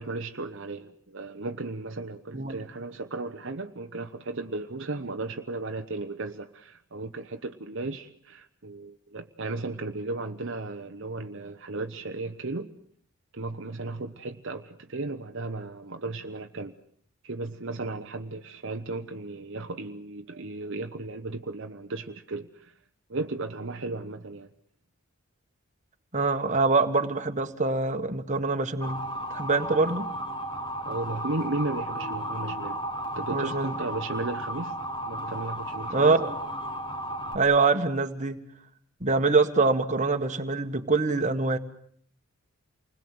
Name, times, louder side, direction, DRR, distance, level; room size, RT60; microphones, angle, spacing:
voice 1, 0.0-12.7 13.3-16.7 17.2-22.7 23.1-24.5 30.8-32.8 33.1-34.8 35.0-36.2, right 2 dB, 60° right, 6 dB, 1.0 m, -35 dB
voice 2, 26.1-29.0 29.3-30.1 33.3-33.7 35.9-36.4 37.3-38.4 39.0-41.6, right 3 dB, 35° right, 6 dB, 1.7 m, -24 dB
Motor vehicle (road) / Siren, 28.8-37.3, equal, 20° left, 2.8 m, -34 dB
29.0 x 21.0 x 7.9 m, 0.62 s
head